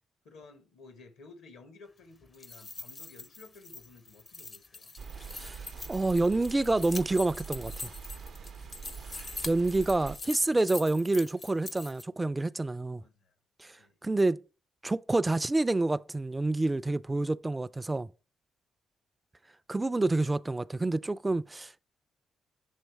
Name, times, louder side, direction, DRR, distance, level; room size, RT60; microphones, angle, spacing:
voice 1, 0.2-4.9 12.9-13.3 13.8-14.0, left 3 dB, 85° left, 0.9 m, -54 dB
sound 1, 2.2-12.0, left 3 dB, 40° left, 0.5 m, -44 dB
sound 2, 5.0-10.2, right 6 dB, 70° right, 0.5 m, -44 dB
voice 2, 5.9-7.9 9.5-13.0 13.6-13.7 14.0-14.4 14.8-18.1 19.7-21.8, right 2 dB, 20° right, 0.3 m, -28 dB
7.3 x 3.1 x 4.5 m
supercardioid pair, 55°, 0 cm